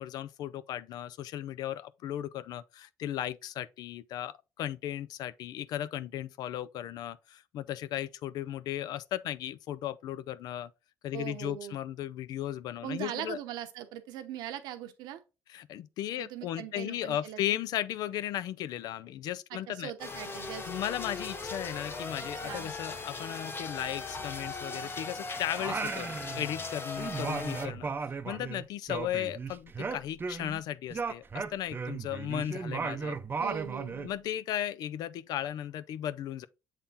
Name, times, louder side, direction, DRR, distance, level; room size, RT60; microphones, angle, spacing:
voice 1, 0.0-10.7 11.0-13.4 15.5-19.9 20.7-26.1 26.4-27.9 28.3-33.2 34.0-36.5, left 12 dB, 75° left, 0.4 m, -36 dB
voice 2, 11.1-11.8 12.8-15.2 16.2-17.4 19.5-20.7 22.2-22.7 33.4-34.1, right 11 dB, 85° right, 0.9 m, -40 dB
sound 1, 20.0-27.7, left 3 dB, 35° left, 1.1 m, -39 dB
Singing, 25.5-26.7 27.0-30.6 30.9-34.1, right 5 dB, 30° right, 0.6 m, -36 dB
7.2 x 3.7 x 4.0 m
cardioid pair, 80°, 7 cm